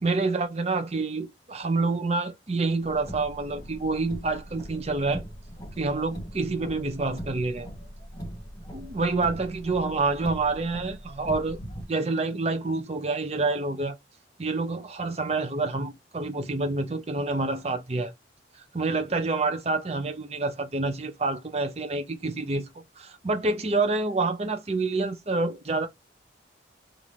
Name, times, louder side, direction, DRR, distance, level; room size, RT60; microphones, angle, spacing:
voice 1, 0.0-5.2 5.8-7.7 8.7-11.6 11.9-14.0 14.4-18.1 18.7-22.7 23.0-25.9, right 3 dB, 35° right, 0.5 m, -27 dB
Car, 2.8-11.8, equal, 20° left, 1.1 m, -41 dB
2.9 x 2.5 x 3.0 m
head